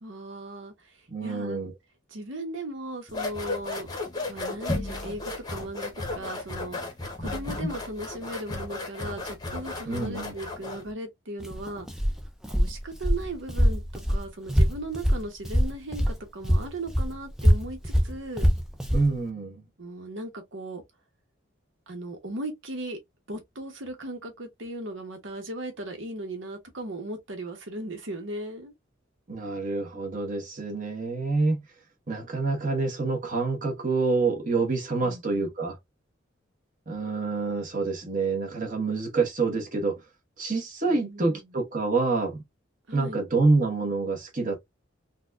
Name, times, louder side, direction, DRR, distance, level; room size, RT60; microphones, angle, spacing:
voice 1, 0.0-1.7 2.1-3.9 4.3-6.8 7.2-11.9 12.5-13.8 14.1-18.5 19.8-20.8 21.9-23.0 23.3-28.7 35.0-35.5 40.9-41.5 42.9-43.2, right 1 dB, 75° right, 1.1 m, -37 dB
voice 2, 1.1-1.7 9.8-10.3 18.9-19.6 29.3-31.6 32.1-35.8 36.9-40.0 40.4-42.4 42.9-44.6, right 3 dB, 40° right, 1.1 m, -27 dB
sound 1, 3.1-10.9, left 2 dB, 20° left, 0.8 m, -34 dB
Walk footsteps, 11.4-16.2 16.4-19.1, equal, ahead, 0.4 m, -24 dB
4.0 x 2.3 x 2.4 m
head